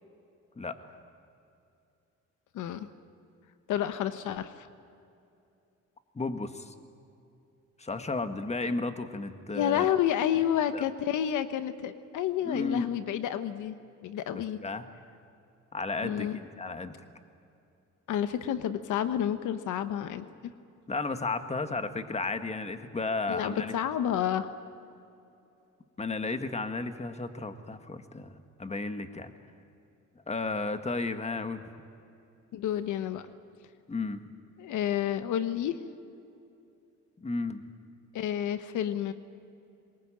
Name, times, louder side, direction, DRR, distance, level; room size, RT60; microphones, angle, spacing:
voice 1, 0.6-1.0 6.2-6.7 7.8-9.9 10.7-10.8 12.5-12.9 14.6-14.9 15.7-17.0 20.9-23.7 26.0-29.3 30.3-31.6 33.9-34.2 37.2-37.6, left 3 dB, 20° left, 8 dB, 1.7 m, -33 dB
voice 2, 2.5-2.9 3.7-4.7 9.5-13.8 14.0-14.6 16.0-16.4 18.1-20.3 23.3-24.5 32.5-33.3 34.6-35.8 38.1-39.1, left 10 dB, 80° left, 11 dB, 1.1 m, -30 dB
23.0 x 21.0 x 9.0 m, 2.7 s
cardioid pair, 90°, 30 cm